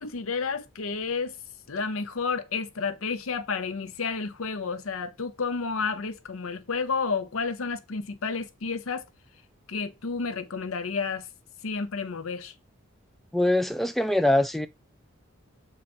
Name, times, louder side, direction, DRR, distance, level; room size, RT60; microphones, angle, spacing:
voice 1, 0.0-1.4 1.7-9.0 9.7-11.3 11.6-12.5, left 4 dB, 85° left, 0.7 m, -31 dB
voice 2, 13.3-14.7, left 1 dB, ahead, 0.3 m, -23 dB
7.5 x 3.0 x 4.3 m
head